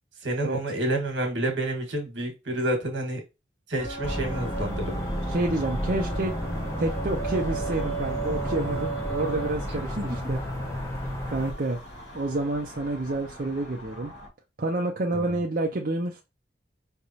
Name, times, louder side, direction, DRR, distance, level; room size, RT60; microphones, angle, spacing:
voice 1, 0.2-3.2 3.7-5.0 10.0-10.2 15.1-15.3, right 1 dB, 80° right, 3 dB, 1.5 m, -29 dB
sound 1, 3.8-14.3, right 4 dB, 75° left, 1.9 m, -37 dB
sound 2, 4.0-11.5, equal, 15° left, 1.4 m, -32 dB
voice 2, 5.3-6.3 6.8-10.4 11.3-11.8 12.1-14.1 14.6-16.2, right 2 dB, 50° right, 0 dB, 0.6 m, -29 dB
4.9 x 3.4 x 2.8 m, 0.27 s
head